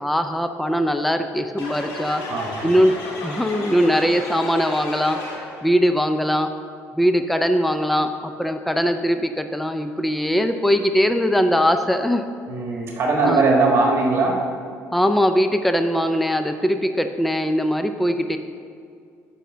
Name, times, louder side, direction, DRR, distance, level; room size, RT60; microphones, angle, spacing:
voice 1, 0.0-2.2 2.6-2.9 3.2-5.2 5.6-6.5 7.0-12.2 13.2-13.4 14.9-18.4, equal, ahead, 7 dB, 0.4 m, -21 dB
sound 1, 1.6-5.7, left 2 dB, 75° left, 2.1 m, -33 dB
voice 2, 2.3-2.7 12.5-14.3, right 3 dB, 50° right, 0 dB, 1.5 m, -20 dB
8.2 x 5.6 x 6.1 m, 2.3 s
cardioid pair, 110°, 6 cm